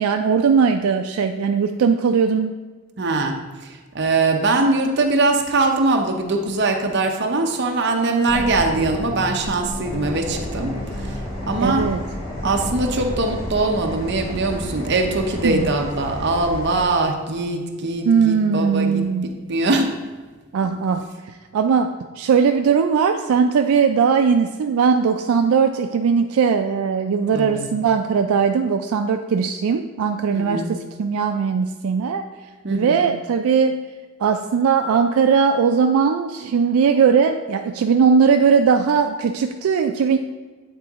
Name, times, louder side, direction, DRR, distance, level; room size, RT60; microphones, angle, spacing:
voice 1, 0.0-2.6 11.6-12.0 15.4-15.7 18.0-19.4 20.5-32.2 32.7-33.9 34.2-40.2, right 6 dB, 75° right, 6 dB, 0.3 m, -19 dB
voice 2, 3.0-11.9 12.4-20.0 27.3-27.7 30.3-30.7 32.6-33.1, right 2 dB, 50° right, 3 dB, 0.7 m, -22 dB
sound 1, 8.3-14.1, left 1 dB, 10° left, 0.3 m, -33 dB
sound 2, 9.8-16.9, equal, 70° left, 1.2 m, -32 dB
8.8 x 3.7 x 3.5 m, 1.3 s
head